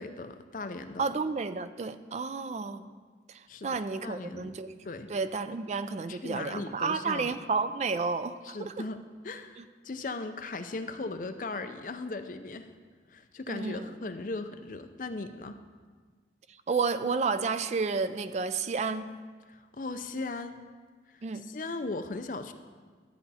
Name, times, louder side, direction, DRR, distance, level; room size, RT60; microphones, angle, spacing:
voice 1, 0.0-1.1 3.5-4.5 4.8-5.1 6.1-7.4 8.4-12.7 13.1-15.6 19.5-20.6 21.1-22.5, left 3 dB, 45° left, 8 dB, 0.5 m, -38 dB
voice 2, 1.0-2.9 3.3-4.7 5.1-8.7 9.6-9.7 13.5-13.9 16.7-19.2 21.2-21.4, right 4 dB, 40° right, 12 dB, 0.3 m, -31 dB
12.0 x 8.6 x 4.1 m, 1.5 s
head